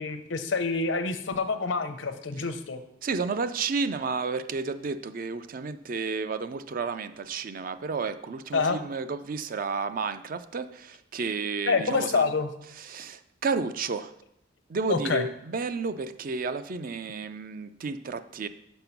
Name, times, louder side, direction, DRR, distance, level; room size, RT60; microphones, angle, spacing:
voice 1, 0.0-2.8 8.5-8.8 11.7-12.5 14.9-15.2, left 4 dB, 80° left, 10 dB, 0.7 m, -27 dB
voice 2, 3.0-12.3 12.8-14.1 14.7-18.5, right 4 dB, 50° right, 11 dB, 0.4 m, -31 dB
5.8 x 5.3 x 5.9 m, 0.75 s
head